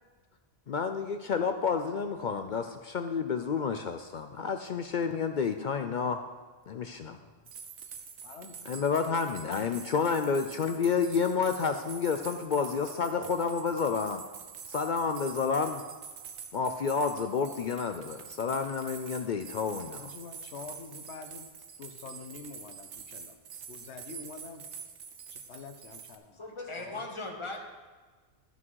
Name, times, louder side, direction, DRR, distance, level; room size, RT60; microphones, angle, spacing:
voice 1, 0.7-6.2 6.7-7.2 8.7-14.2 14.7-15.9 16.5-20.1, left 5 dB, 55° left, 7 dB, 0.6 m, -30 dB
sound 1, 7.5-26.2, right 6 dB, 90° right, 1.1 m, -46 dB
voice 2, 8.2-8.6 9.4-9.6 20.0-21.5 21.8-23.4 23.7-24.6 25.3-26.4 26.8-27.0, left 5 dB, 80° left, 7 dB, 1.1 m, -46 dB
voice 3, 26.3-27.6, left 2 dB, 25° left, 1 dB, 1.3 m, -38 dB
13.5 x 6.1 x 4.6 m, 1.4 s
omnidirectional pair, 1.1 m